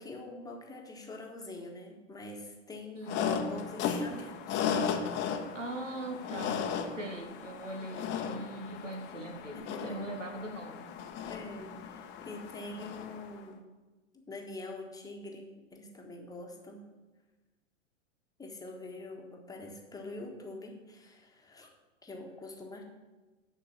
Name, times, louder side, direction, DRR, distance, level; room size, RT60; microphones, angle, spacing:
voice 1, 0.0-5.3 9.5-10.0 11.3-13.7 14.1-16.8 18.4-21.7 22.0-22.8, left 2 dB, 10° left, 1 dB, 1.4 m, -45 dB
voice 2, 2.9-3.4 5.5-6.7 6.9-10.9, right 2 dB, 85° right, 2 dB, 1.8 m, -41 dB
sound 1, 3.1-13.4, left 7 dB, 30° left, 1.0 m, -36 dB
10.5 x 4.5 x 7.1 m, 1.2 s
figure-of-eight pair, 100°, 37 cm